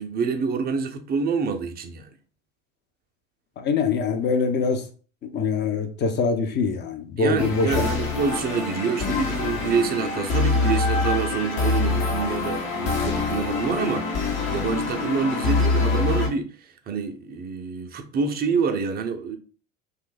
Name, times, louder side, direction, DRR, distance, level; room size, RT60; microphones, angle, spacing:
voice 1, 0.0-2.1 7.2-16.5 16.9-19.4, right 5 dB, 25° right, 0.5 m, -27 dB
voice 2, 3.6-4.8 5.2-7.9, left 4 dB, 25° left, 0.6 m, -24 dB
sound 1, 7.4-16.3, left 3 dB, 50° left, 1.0 m, -25 dB
2.6 x 2.2 x 3.7 m
figure-of-eight pair, 75°, 39 cm